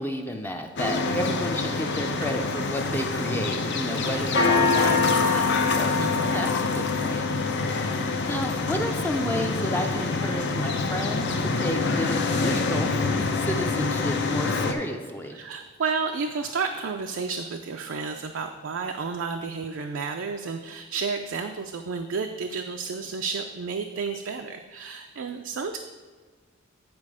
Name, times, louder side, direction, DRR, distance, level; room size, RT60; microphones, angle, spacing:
voice 1, 0.0-6.0 6.3-6.5 6.7-7.3 7.8-11.3 11.5-15.4, equal, 10° left, 3 dB, 0.5 m, -31 dB
sound 1, 0.8-14.7, left 4 dB, 60° left, 0.7 m, -25 dB
voice 2, 1.1-1.4 4.0-4.2 5.9-6.4 15.3-25.8, right 5 dB, 65° right, 5 dB, 0.4 m, -31 dB
9.6 x 4.5 x 4.9 m, 1.5 s
head